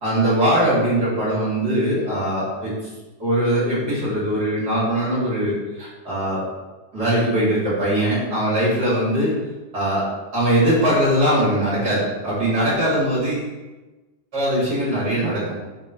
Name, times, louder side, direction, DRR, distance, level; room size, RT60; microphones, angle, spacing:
voice 1, 0.0-2.7 3.2-6.4 6.9-9.3 9.7-10.0 10.3-13.5 14.3-15.4, right 1 dB, 30° right, -8 dB, 2.0 m, -21 dB
6.8 x 5.3 x 5.3 m, 1.2 s
omnidirectional pair, 5.7 m